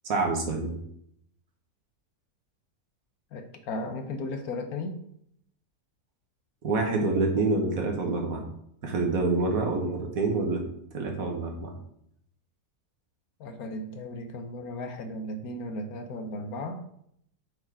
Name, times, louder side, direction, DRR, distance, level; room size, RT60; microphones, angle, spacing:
voice 1, 0.0-0.8 6.6-8.4 8.8-10.6 10.9-11.7, right 3 dB, 60° right, 2 dB, 1.6 m, -27 dB
voice 2, 3.3-5.0 13.4-16.9, left 2 dB, 70° left, 7 dB, 1.1 m, -35 dB
6.9 x 4.2 x 4.8 m, 0.71 s
omnidirectional pair, 1.7 m